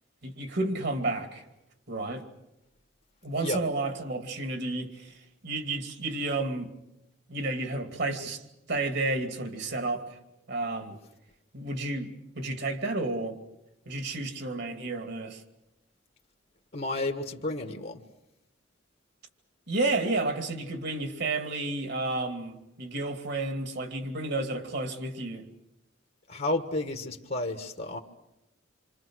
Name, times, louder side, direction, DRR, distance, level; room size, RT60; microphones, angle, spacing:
voice 1, 0.2-1.4 1.9-2.2 3.2-5.2 5.4-6.7 7.3-10.1 10.5-11.0 11.5-12.1 12.3-13.4 13.9-15.4 19.7-25.4, right 2 dB, 60° right, 2.7 m, -31 dB
voice 2, 16.7-18.0 26.3-28.0, left 2 dB, 50° left, 1.6 m, -31 dB
28.0 x 25.5 x 6.3 m
head